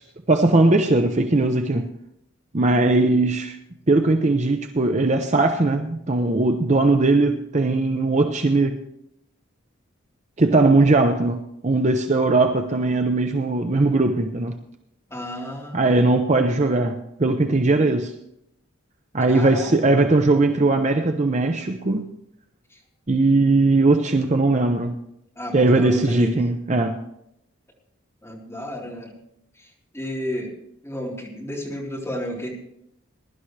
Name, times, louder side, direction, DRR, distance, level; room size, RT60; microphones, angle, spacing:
voice 1, 0.3-1.9 2.5-3.6 3.9-8.8 10.4-14.5 15.7-18.1 19.1-22.1 23.1-24.9 25.5-27.0, right 2 dB, 35° right, 0.6 m, -19 dB
voice 2, 15.1-16.1 19.3-19.7 25.4-26.3 28.2-29.1 29.9-30.5 30.8-32.5, equal, 10° left, 3.8 m, -32 dB
21.5 x 11.5 x 3.3 m
head